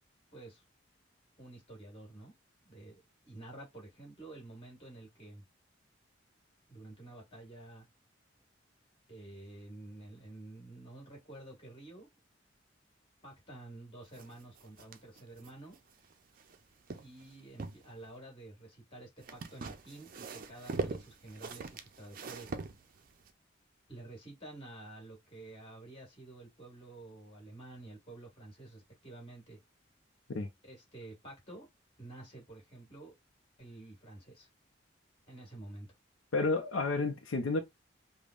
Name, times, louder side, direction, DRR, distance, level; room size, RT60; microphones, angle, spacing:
voice 1, 0.3-0.6 1.4-2.3 2.6-5.4 6.7-7.9 9.1-12.1 13.2-15.8 17.0-22.5 23.9-29.6 30.6-31.7 32.0-33.1 33.6-34.5 35.3-35.9, right 2 dB, 30° left, 1.9 m, -50 dB
sound 1, 14.1-16.6 16.9-17.9 19.2-23.3, right 4 dB, 45° right, 0.4 m, -42 dB
voice 2, 36.3-37.6, left 3 dB, 90° left, 0.5 m, -31 dB
5.2 x 2.1 x 2.4 m
head